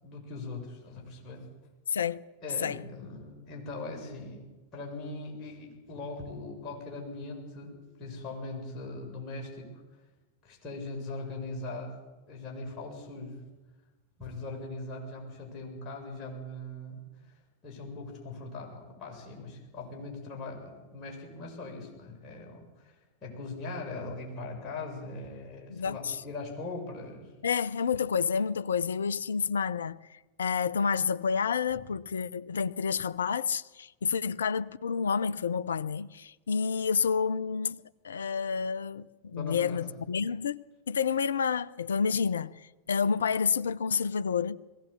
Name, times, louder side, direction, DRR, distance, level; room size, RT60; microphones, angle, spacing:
voice 1, 0.0-1.5 2.4-4.5 4.7-9.7 10.4-12.0 12.3-13.4 14.2-17.4 17.6-23.0 23.2-27.3 39.3-39.8, left 2 dB, 30° left, 7.3 m, -40 dB
voice 2, 25.7-26.2 27.4-40.6 40.9-44.6, left 6 dB, 70° left, 0.6 m, -29 dB
21.0 x 17.0 x 8.5 m
figure-of-eight pair, 90°, 0 cm